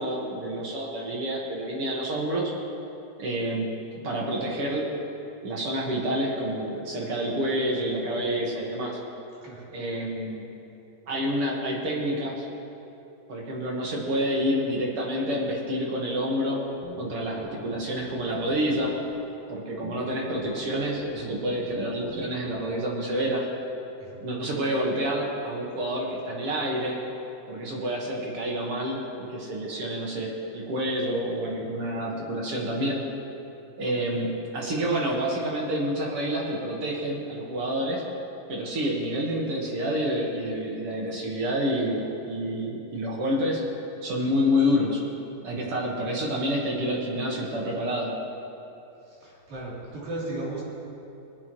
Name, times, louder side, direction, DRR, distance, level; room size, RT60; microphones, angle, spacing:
voice 1, 0.0-2.5 3.2-3.7 4.0-4.8 5.4-9.0 9.7-10.5 11.1-12.5 13.3-16.6 17.0-18.9 19.5-23.4 24.2-27.0 27.5-33.0 33.8-38.0 38.5-43.6 44.0-45.0 45.4-48.1, equal, 50° right, -2 dB, 1.9 m, -28 dB
sound 1, 16.8-19.2 19.8-22.8, left 2 dB, 55° left, 1.5 m, -45 dB
voice 2, 49.1-50.6, right 2 dB, 70° right, -8 dB, 5.0 m, -36 dB
25.0 x 8.9 x 3.1 m, 2.9 s
omnidirectional pair, 4.3 m